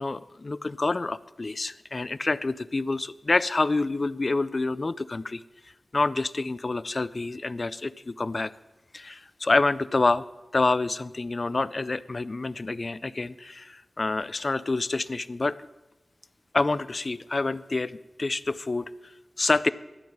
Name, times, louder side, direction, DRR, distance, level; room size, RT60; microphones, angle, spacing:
voice 1, 0.0-5.4 5.9-8.5 8.9-10.2 10.5-15.6 16.5-18.9 19.4-19.7, left 3 dB, 45° left, 17 dB, 0.4 m, -27 dB
12.5 x 5.6 x 8.8 m, 1.0 s
wide cardioid pair, 95°, 0 cm